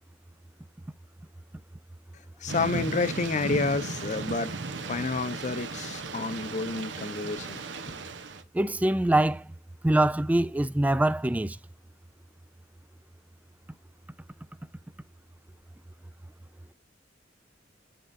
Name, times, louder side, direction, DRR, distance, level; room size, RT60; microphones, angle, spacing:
voice 1, 2.4-4.5 4.9-7.6, left 3 dB, 40° left, 0.6 m, -29 dB
Thunder / Rain, 2.5-8.4, right 3 dB, 75° right, 0.9 m, -36 dB
voice 2, 8.5-9.5 9.8-11.6, right 1 dB, 10° right, 0.3 m, -24 dB
10.5 x 3.7 x 2.6 m
head